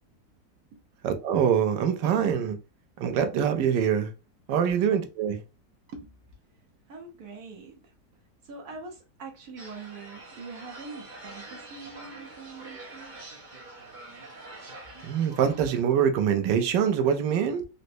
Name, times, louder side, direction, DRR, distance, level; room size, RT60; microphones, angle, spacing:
voice 1, 1.0-2.6 3.0-4.1 4.5-5.4 15.0-17.6, right 8 dB, 85° right, 1.3 m, -24 dB
voice 2, 6.9-7.8 8.4-13.3 15.5-15.6, right 4 dB, 65° right, 1.1 m, -43 dB
sound 1, 9.6-15.8, right 2 dB, 45° right, 0.6 m, -45 dB
4.0 x 2.1 x 2.6 m
omnidirectional pair, 1.9 m